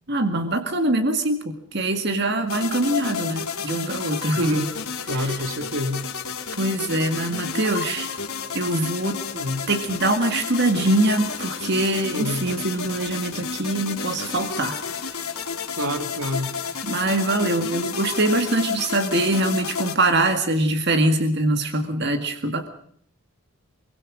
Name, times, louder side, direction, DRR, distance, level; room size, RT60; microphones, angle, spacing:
voice 1, 0.1-4.6 5.1-5.4 6.6-8.1 8.6-9.2 9.7-14.8 16.8-22.7, right 2 dB, 50° right, 7 dB, 1.9 m, -23 dB
sound 1, 2.5-20.0, left 6 dB, 80° left, 3.7 m, -31 dB
voice 2, 4.4-4.7 5.1-6.0 9.3-9.6 12.1-12.5 15.8-16.5, equal, 75° right, 8 dB, 2.4 m, -27 dB
23.5 x 23.5 x 6.2 m, 0.63 s
head